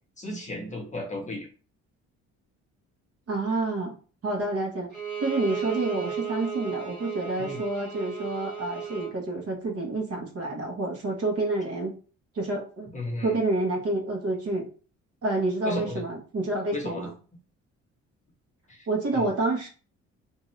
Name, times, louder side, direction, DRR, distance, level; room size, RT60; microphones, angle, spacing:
voice 1, 0.2-1.5 7.4-7.6 12.9-13.4 15.6-16.0 16.7-17.1 18.7-18.9 19.1-19.3, left 1 dB, 25° left, 1 dB, 1.1 m, -34 dB
voice 2, 3.3-3.9 4.2-4.9 5.2-11.9 12.3-12.9 13.2-14.6 15.2-17.1 18.9-19.7, right 2 dB, 50° right, 1 dB, 1.1 m, -28 dB
Bowed string instrument, 4.9-9.2, right 8 dB, 15° right, 1.4 m, -34 dB
2.6 x 2.5 x 3.1 m, 0.38 s
cardioid pair, 90°, 30 cm